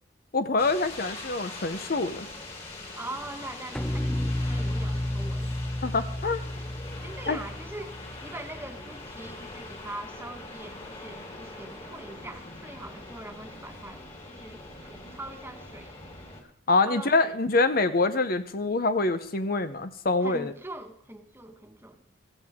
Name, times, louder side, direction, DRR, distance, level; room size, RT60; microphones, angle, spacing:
voice 1, 0.3-2.3 5.8-6.4 7.3-7.4 16.7-20.5, left 3 dB, 50° left, 11 dB, 0.8 m, -25 dB
sound 1, 0.6-16.4, left 2 dB, 35° left, 3.1 m, -43 dB
voice 2, 2.9-5.5 7.0-8.0 8.2-16.0 16.8-17.3 20.2-22.0, right 2 dB, 15° right, 5 dB, 1.4 m, -42 dB
sound 2, 3.7-9.0, left 1 dB, 5° left, 0.6 m, -32 dB
16.0 x 15.0 x 3.6 m, 0.65 s
head